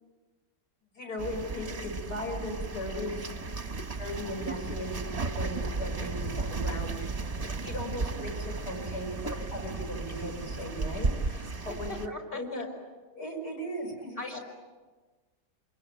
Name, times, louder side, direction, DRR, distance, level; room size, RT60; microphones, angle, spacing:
voice 1, 0.9-3.4 4.0-7.2 7.6-12.7 13.1-14.4, left 1 dB, 70° left, 1 dB, 6.3 m, -37 dB
sound 1, 1.2-12.1, right 3 dB, 25° right, 1.1 m, -34 dB
voice 2, 11.5-12.6 14.2-14.4, left 2 dB, 30° left, 1 dB, 4.8 m, -41 dB
27.5 x 21.5 x 9.2 m, 1.3 s
omnidirectional pair, 1.8 m